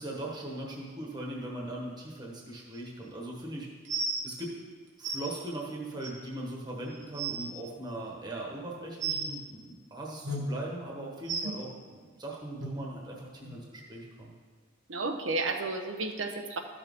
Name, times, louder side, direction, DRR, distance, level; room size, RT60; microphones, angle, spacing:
voice 1, 0.0-3.7 4.2-4.5 5.0-14.3, right 1 dB, 20° right, -3 dB, 1.2 m, -39 dB
sound 1, 3.8-4.2 5.0-5.2 6.0-6.1 6.7-6.8 7.0-7.4 9.0-9.2 10.2-10.4 11.2-11.4 12.6-12.7 13.4-13.5 14.2-14.3, right 4 dB, 65° right, 1.4 m, -32 dB
voice 2, 14.9-16.6, right 3 dB, 85° right, 5 dB, 0.9 m, -32 dB
13.0 x 6.3 x 3.6 m, 1.5 s
head